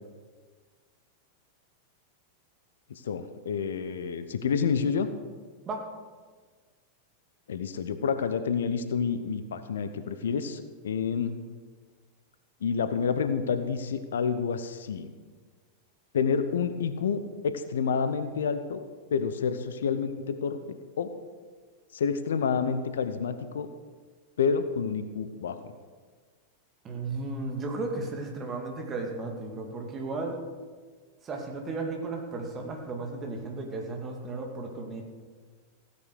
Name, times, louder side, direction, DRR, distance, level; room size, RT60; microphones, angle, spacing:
voice 1, 2.9-5.1 7.5-11.4 12.6-15.1 16.1-18.8 19.1-21.1 21.9-23.7 24.4-25.7, left 6 dB, 65° left, 10 dB, 0.9 m, -29 dB
voice 2, 26.8-30.4 31.2-35.0, right 3 dB, 25° right, 2 dB, 2.5 m, -34 dB
15.5 x 9.8 x 6.6 m, 1.5 s
figure-of-eight pair, 90°, 0 cm